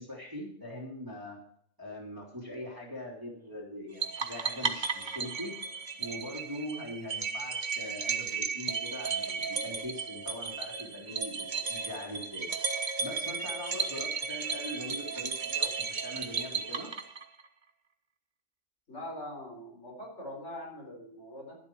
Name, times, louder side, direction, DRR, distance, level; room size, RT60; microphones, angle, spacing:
voice 1, 0.0-1.4 1.8-5.5 6.0-12.5 13.0-16.9, left 1 dB, 15° right, -4 dB, 3.2 m, -42 dB
sound 1, 4.0-17.4, right 5 dB, 40° right, 1.1 m, -34 dB
voice 2, 14.7-15.1 18.9-21.6, left 1 dB, 60° left, 0 dB, 4.6 m, -43 dB
12.5 x 11.0 x 4.6 m, 0.68 s
omnidirectional pair, 1.3 m